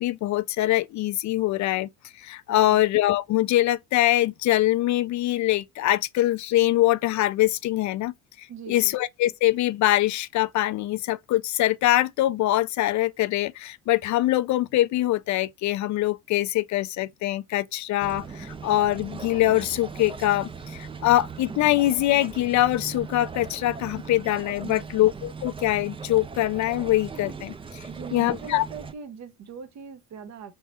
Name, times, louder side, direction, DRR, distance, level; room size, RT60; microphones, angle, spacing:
voice 1, 0.0-1.9 2.2-8.1 8.7-28.6, left 15 dB, 55° left, 0.4 m, -23 dB
voice 2, 2.5-2.8 8.5-9.0 24.6-25.0 27.9-30.5, right 6 dB, 55° right, 0.9 m, -40 dB
sound 1, 18.0-28.9, right 5 dB, 15° right, 0.4 m, -39 dB
3.6 x 3.0 x 4.1 m
cardioid pair, 100°, 34 cm